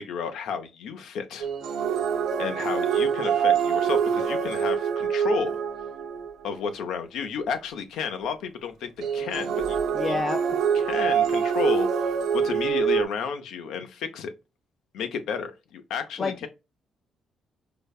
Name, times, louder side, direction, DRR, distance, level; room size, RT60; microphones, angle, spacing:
voice 1, 0.0-1.5 2.4-5.6 6.4-9.8 10.1-10.2 10.7-14.3 14.9-16.5, left 6 dB, 85° left, 0.6 m, -32 dB
sound 1, 1.4-6.5 9.0-13.0, right 7 dB, 90° right, 0.8 m, -25 dB
voice 2, 9.9-10.6 16.2-16.5, left 3 dB, 35° left, 0.4 m, -29 dB
5.0 x 2.1 x 2.3 m
cardioid pair, 90°, 0 cm